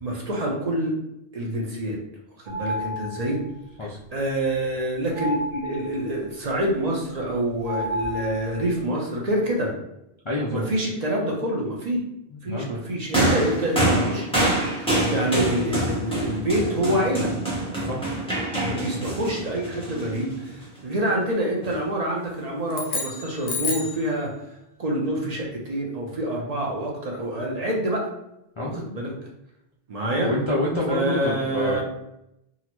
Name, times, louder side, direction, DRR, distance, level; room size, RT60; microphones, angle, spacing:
voice 1, 0.0-0.9 1.3-2.0 2.4-3.4 4.1-9.7 10.5-12.0 12.4-17.3 18.6-24.3 24.8-28.1 28.7-29.1 29.9-30.3 30.9-31.8, right 1 dB, 45° right, -2 dB, 0.6 m, -26 dB
sound 1, 2.5-3.4 5.1-6.1 7.6-8.7, left 1 dB, 75° right, 0.8 m, -31 dB
voice 2, 10.2-10.7 12.3-12.8 17.8-18.0 28.6-28.8 30.2-31.8, left 1 dB, 45° left, -4 dB, 0.4 m, -27 dB
sound 2, 13.1-20.6 21.6-21.8, right 1 dB, 5° left, 0.7 m, -26 dB
sound 3, 22.7-24.1, left 4 dB, 75° left, 0.8 m, -30 dB
3.7 x 2.1 x 2.9 m, 0.84 s
omnidirectional pair, 1.0 m